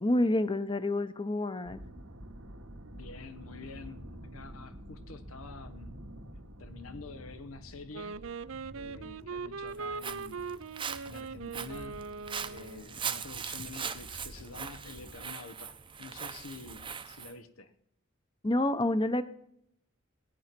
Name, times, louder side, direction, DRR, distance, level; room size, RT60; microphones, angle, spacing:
voice 1, 0.0-1.8 18.4-19.2, left 1 dB, 25° left, 12 dB, 0.8 m, -28 dB
sound 1, 1.6-15.1, equal, 90° right, 2.0 m, -49 dB
voice 2, 2.9-6.0 6.6-8.2 8.7-10.5 11.1-12.1 12.4-17.7, left 4 dB, 90° left, 11 dB, 1.1 m, -48 dB
Wind instrument woodwind instrument, 7.9-12.9, right 5 dB, 75° right, 0.5 m, -40 dB
Walk footsteps, 9.7-17.3, right 7 dB, 25° right, 0.7 m, -40 dB
17.5 x 10.5 x 6.0 m, 0.75 s
head